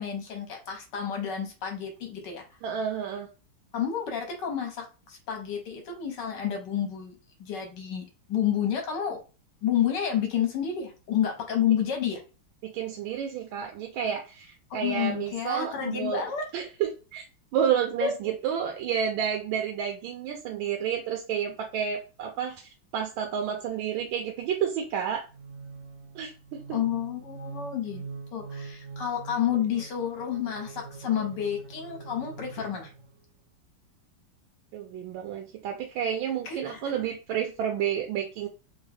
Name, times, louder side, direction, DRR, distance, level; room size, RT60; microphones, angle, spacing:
voice 1, 0.0-2.4 3.7-7.1 7.4-9.2 9.6-12.2 14.7-16.4 18.0-18.1 26.7-28.0 28.3-32.9 36.4-36.9, left 9 dB, 65° left, 3 dB, 1.3 m, -30 dB
voice 2, 2.6-3.3 12.6-16.3 16.5-17.2 17.5-25.2 26.1-26.8 34.7-38.5, right 8 dB, 80° right, 2 dB, 1.3 m, -30 dB
sound 1, 25.3-33.2, right 4 dB, 55° right, 0.9 m, -43 dB
3.6 x 2.1 x 3.2 m, 0.33 s
omnidirectional pair, 2.2 m